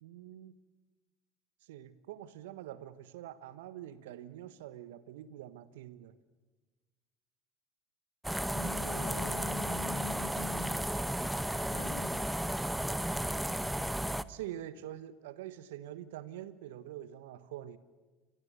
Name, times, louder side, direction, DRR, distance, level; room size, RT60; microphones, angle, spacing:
voice 1, 0.0-0.5 1.6-6.2 14.3-17.8, right 12 dB, 75° right, 14 dB, 1.2 m, -45 dB
sound 1, 8.2-14.2, right 1 dB, 5° right, 1.2 m, -33 dB
voice 2, 8.5-10.9 11.7-12.3, left 9 dB, 85° left, 8 dB, 2.7 m, -45 dB
28.5 x 26.5 x 6.8 m, 1.3 s
hypercardioid pair, 65°, 0 cm